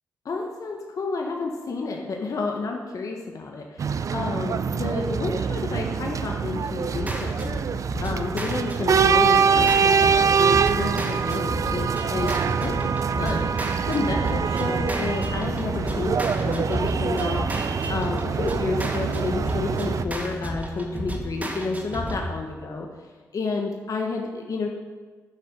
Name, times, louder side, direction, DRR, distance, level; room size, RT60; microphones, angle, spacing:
voice 1, 0.2-12.8 13.2-17.5 17.9-22.9 23.3-24.7, left 3 dB, 60° left, 1 dB, 1.3 m, -30 dB
sound 1, 3.8-20.0, right 6 dB, 55° right, 0.5 m, -24 dB
sound 2, 6.9-22.3, equal, 20° right, 2.2 m, -32 dB
10.5 x 6.0 x 8.0 m, 1.4 s
supercardioid pair, 55°, 7 cm